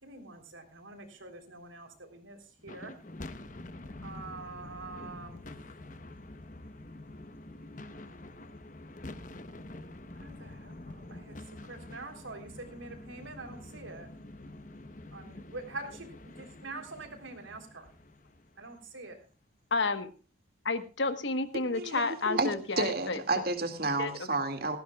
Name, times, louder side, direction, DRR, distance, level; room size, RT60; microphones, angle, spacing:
voice 1, 0.0-2.9 4.0-5.4 7.8-8.0 10.2-11.4 11.6-14.1 15.1-17.9 18.6-19.2, right 3 dB, 90° right, 5 dB, 3.6 m, -45 dB
sound 1, 2.6-19.0, left 2 dB, 40° left, 1.0 m, -47 dB
voice 2, 19.7-20.1 20.6-23.2 24.0-24.1, left 3 dB, 75° left, 11 dB, 1.3 m, -30 dB
voice 3, 21.5-24.8, right 2 dB, 50° right, 6 dB, 2.2 m, -31 dB
18.5 x 15.5 x 2.4 m, 0.35 s
head